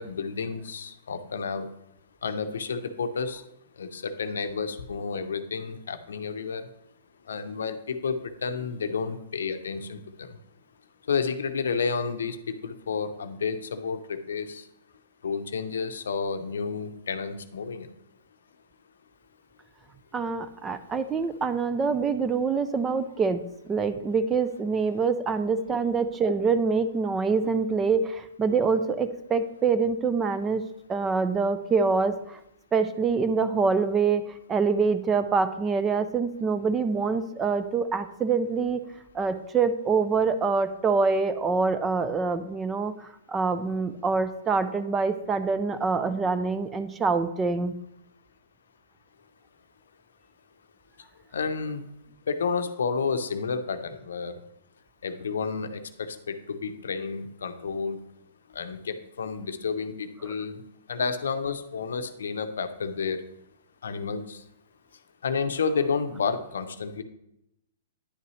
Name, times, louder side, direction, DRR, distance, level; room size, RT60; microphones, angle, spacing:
voice 1, 0.0-1.7 2.2-3.4 3.8-6.6 7.3-8.2 8.4-10.4 11.1-14.6 15.2-17.9 51.3-51.8 52.3-54.4 55.0-58.0 58.5-60.6 60.9-63.2 63.8-64.4 65.2-67.0, left 5 dB, 90° left, 10 dB, 0.6 m, -30 dB
voice 2, 20.1-30.6 30.9-32.4 32.7-34.2 34.5-38.8 39.1-47.7, right 4 dB, 15° right, 12 dB, 0.4 m, -25 dB
10.0 x 5.6 x 3.1 m, 0.83 s
hypercardioid pair, 150°, 0 cm